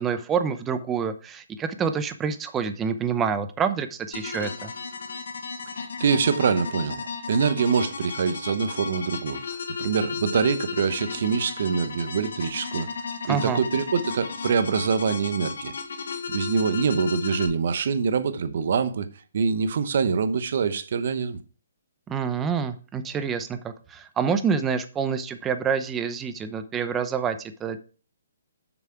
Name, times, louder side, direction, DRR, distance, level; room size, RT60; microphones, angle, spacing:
voice 1, 0.0-4.7 13.2-13.6 22.1-27.8, right 6 dB, 15° right, 0.7 m, -27 dB
sound 1, 4.1-17.5, left 5 dB, 75° left, 1.3 m, -34 dB
voice 2, 5.7-12.9 13.3-15.7 16.3-19.1 19.3-21.4, right 6 dB, 60° right, 0.9 m, -25 dB
7.3 x 6.2 x 4.5 m
hypercardioid pair, 155°, 0 cm